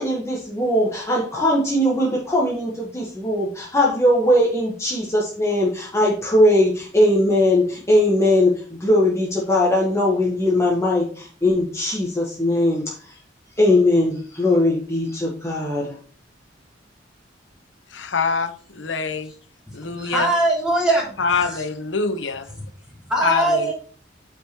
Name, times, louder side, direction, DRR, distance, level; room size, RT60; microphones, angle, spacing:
voice 1, 0.0-13.1 13.6-15.9, left 1 dB, 15° left, 1.3 m, -20 dB
voice 2, 17.9-19.3 19.7-20.3 21.2-22.5 23.2-23.4, left 5 dB, 75° left, 0.9 m, -24 dB
voice 3, 19.9-21.1 21.4-21.6 23.1-23.7, right 1 dB, 5° right, 2.9 m, -21 dB
8.9 x 5.1 x 3.0 m
head